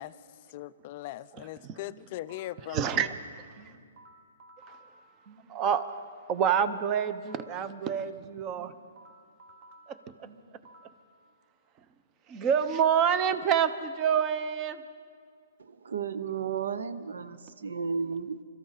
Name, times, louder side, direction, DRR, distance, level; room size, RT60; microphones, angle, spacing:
voice 1, 0.0-3.0, left 15 dB, 40° left, 15 dB, 0.3 m, -40 dB
voice 2, 1.4-1.8 2.7-3.8 4.6-5.0 5.3-8.7 9.9-10.6 11.7-11.9 12.3-14.8, right 8 dB, 25° right, 12 dB, 0.7 m, -28 dB
sound 1, 1.9-2.7 3.6-6.1 6.9-7.7 8.6-11.1, right 2 dB, 40° right, 1.5 m, -55 dB
voice 3, 15.6-18.4, right 6 dB, 80° right, 13 dB, 0.8 m, -33 dB
25.0 x 14.0 x 4.1 m, 2.2 s
hypercardioid pair, 155°, 0 cm